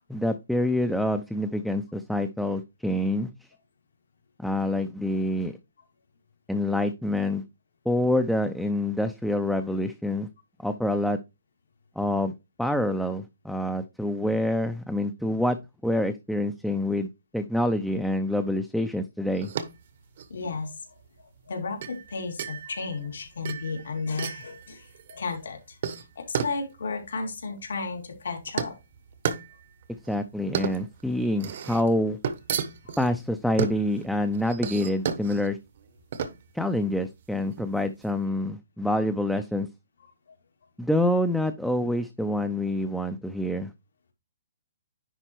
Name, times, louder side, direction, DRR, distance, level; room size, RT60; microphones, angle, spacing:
voice 1, 0.1-3.3 4.4-5.6 6.5-7.4 7.9-10.3 10.6-11.2 12.0-15.6 15.8-19.5 30.1-32.2 33.0-35.6 36.5-39.7 40.8-43.7, left 1 dB, ahead, 0.5 m, -26 dB
sound 1, 19.3-38.1, right 7 dB, 55° right, 1.0 m, -34 dB
voice 2, 20.3-20.7 21.5-28.7 32.8-33.0, left 4 dB, 80° left, 2.7 m, -33 dB
10.0 x 4.4 x 3.0 m
hypercardioid pair, 150°, 0 cm